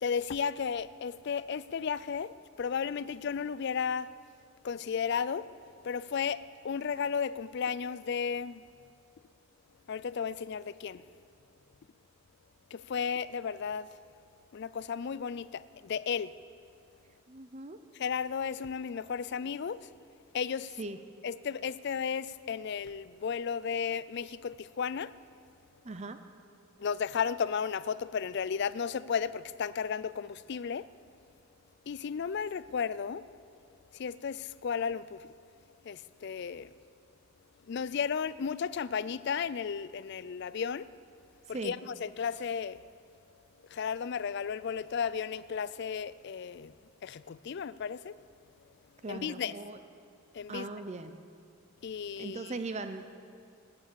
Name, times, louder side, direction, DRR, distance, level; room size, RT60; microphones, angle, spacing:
voice 1, 0.0-2.3 2.6-4.1 4.6-5.5 5.8-8.6 9.9-11.0 12.7-13.9 14.5-16.3 17.9-19.9 20.3-20.8 21.2-25.1 26.8-30.9 31.9-33.2 33.9-35.3 35.8-36.7 37.7-40.9 41.5-42.8 43.7-46.7 47.0-48.1 49.1-49.5 50.3-50.7 51.8-52.5, left 6 dB, 50° left, 0.4 m, -34 dB
voice 2, 17.3-17.8 20.8-21.0 25.8-26.2 41.5-41.8 49.0-49.8 50.5-51.1 52.2-53.0, right 3 dB, 30° right, 0.6 m, -39 dB
19.0 x 8.9 x 6.9 m
head